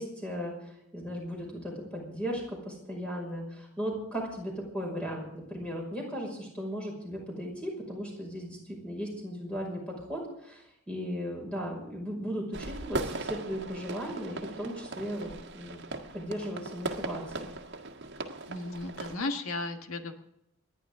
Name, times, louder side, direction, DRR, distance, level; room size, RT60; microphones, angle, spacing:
voice 1, 0.0-15.9 16.1-17.5, equal, 5° left, -1 dB, 5.5 m, -37 dB
sound 1, 12.5-19.2, right 2 dB, 55° right, 1.7 m, -38 dB
voice 2, 18.5-20.1, left 2 dB, 85° left, 5 dB, 1.7 m, -35 dB
28.5 x 10.5 x 3.7 m, 0.82 s
head